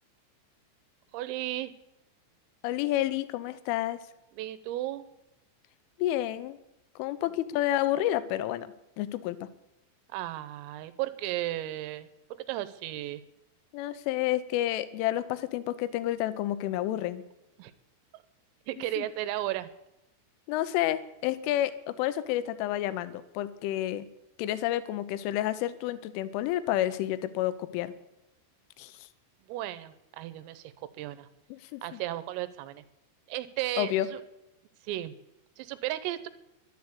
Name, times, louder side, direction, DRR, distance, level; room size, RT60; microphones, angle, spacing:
voice 1, 1.1-1.7 4.3-5.0 10.1-12.1 12.5-13.2 17.6-17.7 18.1-18.2 18.7-19.7 29.5-31.3 31.8-32.8 33.3-34.2 34.8-35.2 35.6-36.3, right 14 dB, 85° right, 14 dB, 3.5 m, -34 dB
voice 2, 2.6-4.0 6.0-6.6 7.0-9.5 13.7-17.2 19.0-19.1 20.5-24.1 24.4-27.9 28.8-29.1 31.5-32.0 33.8-34.1, left 13 dB, 80° left, 14 dB, 3.2 m, -30 dB
12.0 x 11.0 x 8.2 m, 0.92 s
omnidirectional pair, 5.9 m